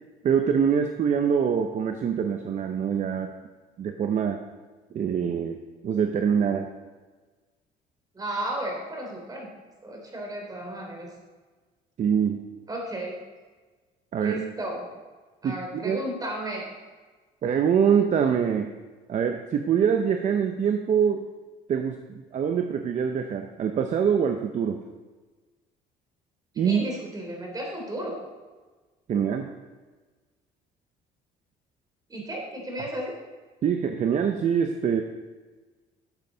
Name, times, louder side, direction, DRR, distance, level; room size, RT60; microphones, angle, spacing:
voice 1, 0.2-3.3 3.8-4.4 4.9-6.7 12.0-12.4 14.1-14.4 15.4-16.0 17.4-18.7 19.1-21.2 21.7-24.8 26.6-26.8 29.1-29.5 33.6-35.0, right 7 dB, 45° right, 6 dB, 0.7 m, -24 dB
voice 2, 8.1-9.5 9.8-11.1 12.7-13.1 14.2-14.9 15.4-16.7 26.6-28.2 32.1-33.1, right 1 dB, 20° right, -1 dB, 3.2 m, -33 dB
12.0 x 7.6 x 3.9 m, 1.3 s
cardioid pair, 110°, 17 cm